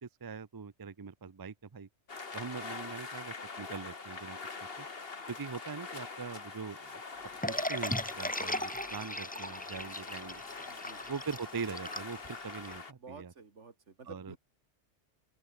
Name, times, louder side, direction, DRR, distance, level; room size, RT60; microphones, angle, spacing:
voice 1, 0.0-1.9 2.3-4.4 4.8-4.9 5.3-10.4 11.1-13.3 14.1-14.4, right 5 dB, 30° right, 0.4 m, -42 dB
sound 1, 2.1-12.9, left 4 dB, 50° left, 2.1 m, -44 dB
sound 2, 7.4-12.7, left 1 dB, 5° left, 1.5 m, -37 dB
voice 2, 10.7-11.0 13.0-14.4, right 4 dB, 75° right, 2.4 m, -51 dB
open air
omnidirectional pair, 1.2 m